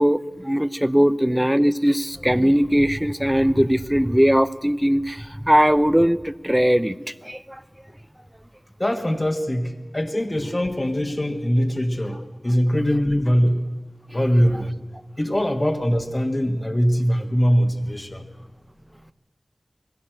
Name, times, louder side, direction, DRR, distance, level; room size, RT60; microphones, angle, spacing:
voice 1, 0.0-7.6, equal, 10° right, 15 dB, 0.8 m, -20 dB
voice 2, 8.8-13.6 14.1-14.8 15.2-18.2, equal, 30° left, 4 dB, 1.6 m, -22 dB
21.0 x 16.0 x 7.8 m, 1.4 s
wide cardioid pair, 45°, 0 cm